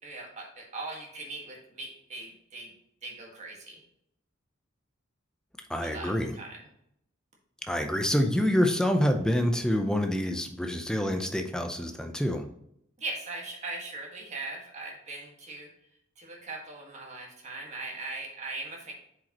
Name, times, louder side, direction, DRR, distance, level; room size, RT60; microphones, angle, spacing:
voice 1, 0.0-2.7 3.0-3.8 5.8-6.7 13.0-15.7 16.2-18.9, right 2 dB, 35° right, -1 dB, 1.7 m, -40 dB
voice 2, 5.7-6.3 7.7-12.5, equal, 5° left, 5 dB, 0.5 m, -27 dB
7.4 x 5.0 x 3.0 m, 0.75 s
head